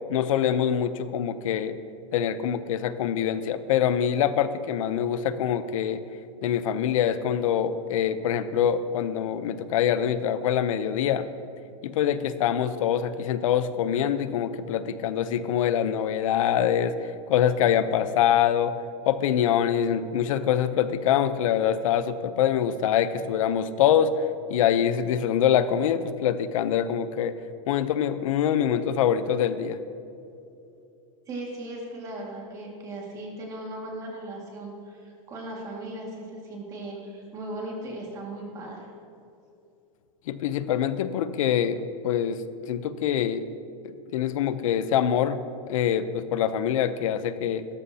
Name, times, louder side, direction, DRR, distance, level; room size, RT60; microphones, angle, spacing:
voice 1, 0.1-1.8 2.1-6.0 6.4-11.3 11.8-17.0 17.3-18.8 19.0-24.1 24.5-27.3 27.7-29.8 40.3-43.5 43.8-45.4 45.7-47.7, left 9 dB, 75° left, 13 dB, 0.7 m, -24 dB
voice 2, 31.3-38.9, right 1 dB, 20° right, -2 dB, 2.1 m, -37 dB
16.5 x 13.5 x 2.9 m, 2.7 s
supercardioid pair, 180°, 17 cm